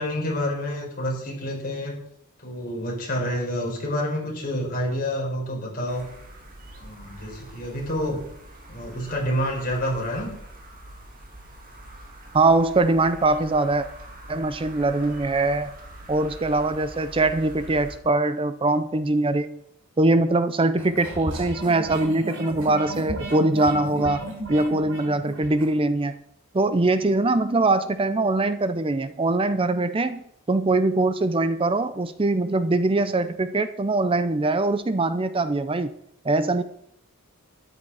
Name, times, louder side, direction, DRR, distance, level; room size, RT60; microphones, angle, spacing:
voice 1, 0.0-2.0 2.4-6.1 6.8-8.2 8.7-10.3, equal, 40° left, -2 dB, 4.5 m, -28 dB
sound 1, 5.9-18.0, right 1 dB, 40° right, 2.3 m, -44 dB
voice 2, 12.3-13.9 14.3-15.7 16.1-19.6 20.0-24.2 24.5-26.2 26.5-35.9 36.2-36.6, right 2 dB, 25° right, 12 dB, 0.5 m, -22 dB
sound 2, 20.8-25.7, right 1 dB, 80° right, 3.6 m, -34 dB
13.0 x 10.0 x 4.8 m, 0.72 s
head